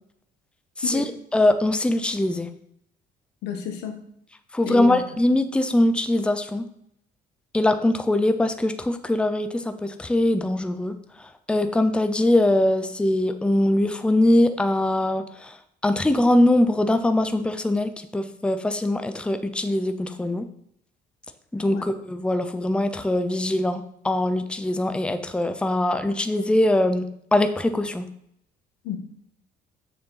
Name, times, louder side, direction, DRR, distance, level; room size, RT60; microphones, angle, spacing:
voice 1, 1.3-2.5 4.5-6.7 7.5-15.6 15.8-20.5 21.5-27.0 27.3-28.1, left 1 dB, 5° left, 9 dB, 0.6 m, -22 dB
voice 2, 3.4-4.0 4.6-5.0 21.7-21.8 28.8-29.0, left 7 dB, 90° left, 5 dB, 1.3 m, -30 dB
6.8 x 6.6 x 3.9 m, 0.71 s
cardioid pair, 110°, 17 cm